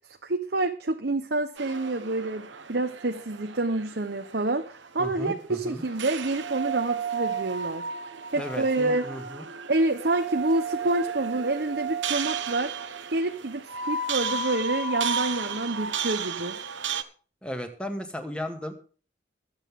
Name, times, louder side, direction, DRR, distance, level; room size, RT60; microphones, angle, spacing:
voice 1, 0.2-7.9 8.3-9.1 9.7-12.7 13.1-16.6, right 2 dB, 60° right, 6 dB, 1.0 m, -28 dB
sound 1, 1.6-17.0, right 5 dB, 85° right, 1.3 m, -33 dB
voice 2, 5.0-5.8 8.4-9.4 17.4-18.7, equal, 5° left, 5 dB, 2.1 m, -35 dB
22.5 x 8.1 x 3.7 m, 0.38 s
head